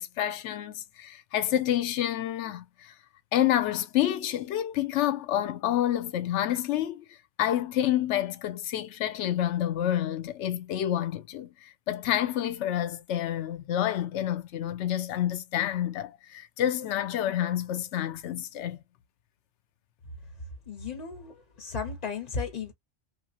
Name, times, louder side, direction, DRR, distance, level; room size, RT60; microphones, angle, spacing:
voice 1, 0.0-2.9 3.3-7.1 7.4-18.8, left 11 dB, 85° left, 0.9 m, -28 dB
voice 2, 20.7-22.7, left 5 dB, 40° left, 0.7 m, -35 dB
2.9 x 2.3 x 2.7 m
omnidirectional pair, 1.2 m